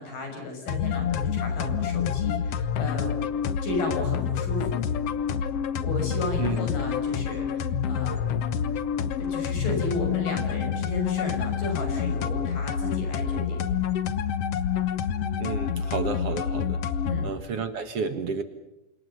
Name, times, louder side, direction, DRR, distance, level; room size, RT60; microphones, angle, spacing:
voice 1, 0.0-3.2 3.6-4.8 5.8-8.3 9.2-13.6 17.0-17.3, left 2 dB, 85° left, 4 dB, 7.9 m, -34 dB
sound 1, 0.7-17.3, left 8 dB, 60° left, 1.8 m, -28 dB
voice 2, 15.4-16.8 17.2-18.4, right 5 dB, 50° right, 9 dB, 2.3 m, -31 dB
29.0 x 27.0 x 5.6 m, 0.93 s
omnidirectional pair, 3.8 m